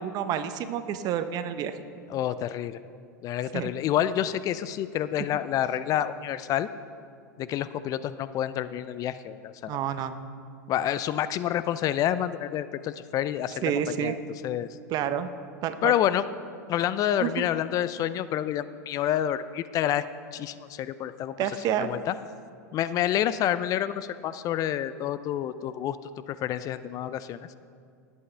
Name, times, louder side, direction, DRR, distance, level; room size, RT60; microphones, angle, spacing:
voice 1, 0.0-1.8 3.5-3.7 9.7-10.1 13.6-14.2 14.9-15.3 15.6-15.9 17.2-17.3 21.4-21.9, right 9 dB, 40° right, 11 dB, 0.8 m, -29 dB
voice 2, 2.1-2.8 3.2-6.7 7.4-9.8 10.7-14.2 14.4-14.7 15.8-16.2 16.7-20.1 20.3-21.4 21.8-22.1 22.7-26.0 26.3-27.5, left 11 dB, 35° left, 14 dB, 0.4 m, -28 dB
18.5 x 8.2 x 3.3 m, 2.4 s
hypercardioid pair, 95°, 10 cm